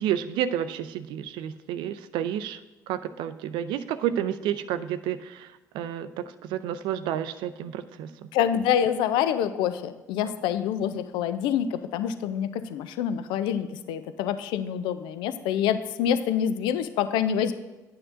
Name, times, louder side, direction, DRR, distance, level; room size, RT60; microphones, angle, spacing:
voice 1, 0.0-2.6 2.9-5.5 5.7-8.1, right 10 dB, 65° right, 12 dB, 0.4 m, -30 dB
voice 2, 8.3-17.5, left 9 dB, 65° left, 12 dB, 0.4 m, -26 dB
11.0 x 8.6 x 2.5 m, 1.1 s
figure-of-eight pair, 45°, 9 cm